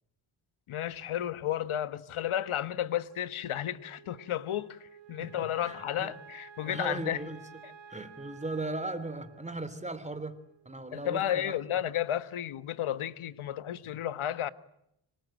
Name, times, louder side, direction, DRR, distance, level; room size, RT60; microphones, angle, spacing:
voice 1, 0.7-7.3 7.6-7.7 10.9-14.5, left 11 dB, 85° left, 1.3 m, -33 dB
Wind instrument woodwind instrument, 3.0-11.5, right 7 dB, 65° right, 3.7 m, -53 dB
voice 2, 5.2-6.1 6.7-7.4 7.9-10.4 10.6-11.6, right 2 dB, 15° right, 3.1 m, -37 dB
25.5 x 25.5 x 9.0 m
cardioid pair, 75°, 48 cm